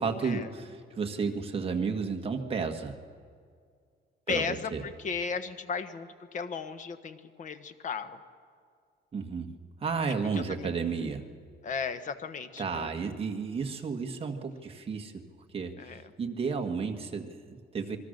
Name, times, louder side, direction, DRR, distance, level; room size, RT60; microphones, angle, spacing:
voice 1, 0.0-3.0 4.3-4.8 9.1-9.5 9.8-11.3 12.6-15.2 15.5-18.0, right 5 dB, 30° right, 4 dB, 1.7 m, -32 dB
voice 2, 4.3-8.2 10.3-10.7 11.6-12.9 15.8-16.0, left 5 dB, 40° left, 10 dB, 1.3 m, -35 dB
27.5 x 21.0 x 6.6 m, 2.1 s
cardioid pair, 170°, 19 cm